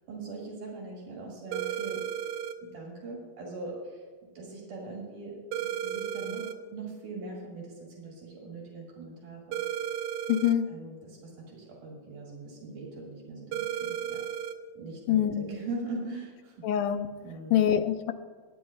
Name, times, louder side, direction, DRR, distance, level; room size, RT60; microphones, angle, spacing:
voice 1, 0.1-2.1 2.6-4.0 4.4-9.6 10.7-14.2 14.8-16.7 17.2-17.6, right 3 dB, 70° right, -3 dB, 3.7 m, -41 dB
sound 1, 1.5-2.6 5.5-6.6 9.5-10.6 13.5-14.6, right 10 dB, 85° right, 2.3 m, -33 dB
voice 2, 10.3-10.7 15.1-15.5 16.6-17.1 17.5-18.1, left 10 dB, 80° left, 10 dB, 2.2 m, -25 dB
23.5 x 9.8 x 2.4 m, 1.5 s
omnidirectional pair, 3.8 m